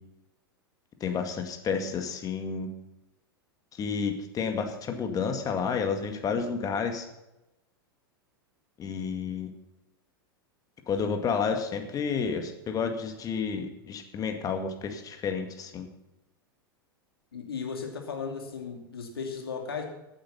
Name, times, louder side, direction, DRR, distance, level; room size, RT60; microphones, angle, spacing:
voice 1, 1.0-2.7 3.7-7.1 8.8-9.5 10.9-15.9, left 6 dB, 30° left, 6 dB, 2.1 m, -30 dB
voice 2, 17.3-19.9, left 5 dB, 80° left, 3 dB, 2.8 m, -36 dB
15.5 x 8.9 x 5.6 m, 0.93 s
figure-of-eight pair, 95°, 12 cm